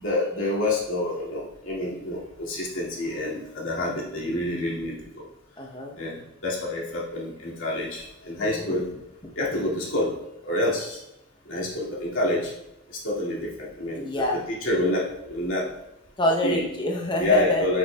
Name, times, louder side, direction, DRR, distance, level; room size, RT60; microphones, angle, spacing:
voice 1, 0.0-5.2 6.0-8.9 9.4-10.1 10.4-11.0 11.5-12.5 13.0-14.1 14.5-15.7 16.4-16.6 17.2-17.8, left 1 dB, 85° left, -4 dB, 2.1 m, -27 dB
voice 2, 5.6-5.9 8.4-8.8 9.5-9.6 14.0-14.4 16.2-17.7, left 1 dB, 25° left, 1 dB, 0.6 m, -27 dB
8.4 x 6.1 x 2.2 m, 0.90 s
head